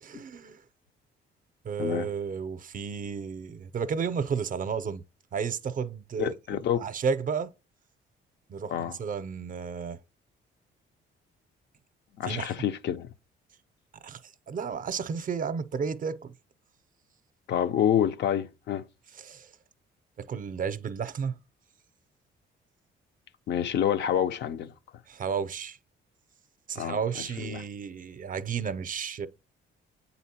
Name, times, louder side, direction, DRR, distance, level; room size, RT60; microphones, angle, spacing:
voice 1, 0.0-0.6 1.6-5.0 5.3-7.5 8.5-10.0 12.2-12.5 14.0-14.2 14.5-16.3 19.2-19.5 20.2-21.4 25.1-25.8 26.7-29.3, right 6 dB, 45° right, 0.5 m, -32 dB
voice 2, 6.2-6.8 8.7-9.0 12.2-13.1 17.5-18.9 23.5-24.7 26.8-27.0 27.4-27.6, left 10 dB, 60° left, 0.5 m, -27 dB
8.2 x 4.1 x 2.8 m
cardioid pair, 90°, 20 cm